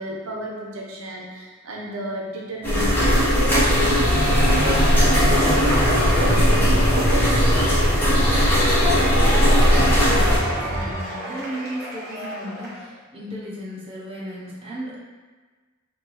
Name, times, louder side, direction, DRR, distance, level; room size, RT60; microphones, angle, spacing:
voice 1, 0.0-7.8, right 1 dB, 80° right, -1 dB, 0.6 m, -32 dB
sound 1, 2.6-10.4, equal, 10° left, 0.9 m, -18 dB
Cheering / Applause / Crowd, 4.0-12.9, left 1 dB, 50° right, 1.1 m, -30 dB
sound 2, 4.1-10.9, right 1 dB, 30° left, 1.3 m, -28 dB
voice 2, 9.4-15.0, equal, 25° right, -7 dB, 0.9 m, -35 dB
4.6 x 2.6 x 3.1 m, 1.4 s
head